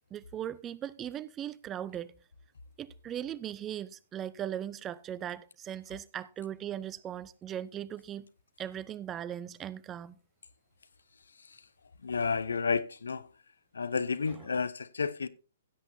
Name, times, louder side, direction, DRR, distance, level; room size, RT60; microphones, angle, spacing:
voice 1, 0.0-2.1 2.8-8.3 8.6-10.2, right 10 dB, 20° right, 0.4 m, -39 dB
voice 2, 12.0-13.3 13.7-15.3, left 5 dB, 75° left, 0.6 m, -31 dB
16.0 x 8.0 x 2.7 m
figure-of-eight pair, 125°, 0 cm